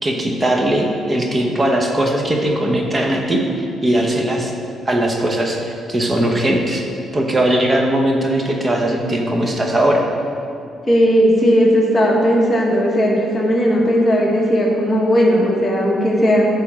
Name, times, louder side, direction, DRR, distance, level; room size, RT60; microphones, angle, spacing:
voice 1, 0.0-4.5 4.9-6.8 7.1-10.0, right 1 dB, 25° right, 1 dB, 0.9 m, -19 dB
voice 2, 10.9-16.5, equal, 15° left, -4 dB, 1.3 m, -16 dB
9.6 x 3.4 x 6.1 m, 2.5 s
cardioid pair, 90°, 0 cm